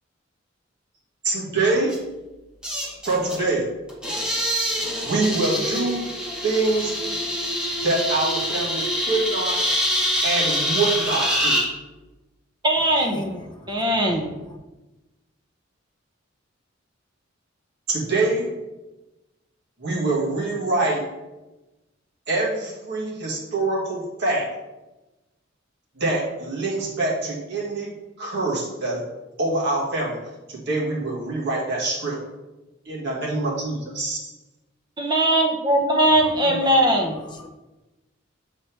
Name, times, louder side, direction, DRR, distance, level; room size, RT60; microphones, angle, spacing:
voice 1, 1.2-2.0 3.0-3.6 5.0-6.0 6.4-6.9 7.8-9.6 10.2-11.6 17.9-18.5 19.8-21.0 22.3-24.5 26.0-27.9 28.2-29.0 29.4-30.2 30.5-32.2 32.9-34.2, right 2 dB, 60° right, 1.8 m, -24 dB
sound 1, 1.9-2.0 2.6-3.4 3.9-11.6, equal, 5° right, 1.3 m, -25 dB
voice 2, 12.6-13.2 13.7-14.3 35.0-37.2, right 1 dB, 20° right, 0.8 m, -20 dB
voice 3, 13.1-13.9 36.2-36.8 37.4-37.5, left 1 dB, 25° left, 0.7 m, -36 dB
7.5 x 4.2 x 3.4 m
head